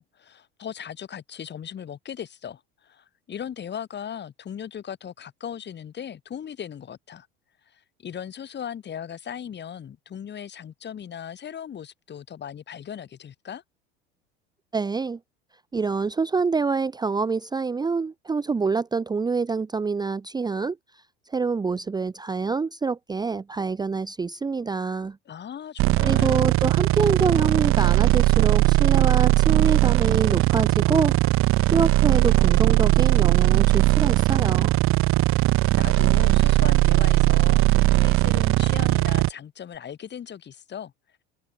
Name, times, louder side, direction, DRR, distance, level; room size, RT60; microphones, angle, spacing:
voice 1, 0.0-7.3 7.7-13.6 25.3-26.4 35.3-35.5 35.7-40.9, left 8 dB, 35° left, 4.0 m, -38 dB
voice 2, 14.7-15.2 15.7-20.8 21.3-25.2 26.0-31.2 31.7-34.7, right 4 dB, 15° right, 0.7 m, -26 dB
sound 1, 25.8-39.3, right 18 dB, 45° right, 0.7 m, -19 dB
hypercardioid pair, 80°, 30 cm